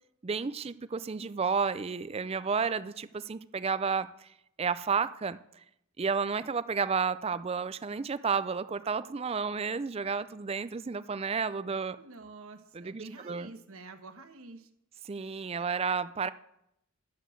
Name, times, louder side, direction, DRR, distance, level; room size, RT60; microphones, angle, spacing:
voice 1, 0.2-4.3 4.6-5.4 6.0-12.0 12.7-13.5 15.1-16.3, right 5 dB, 25° right, 0.4 m, -31 dB
voice 2, 12.0-14.7, right 3 dB, 75° right, 1.2 m, -48 dB
11.0 x 7.1 x 7.6 m
head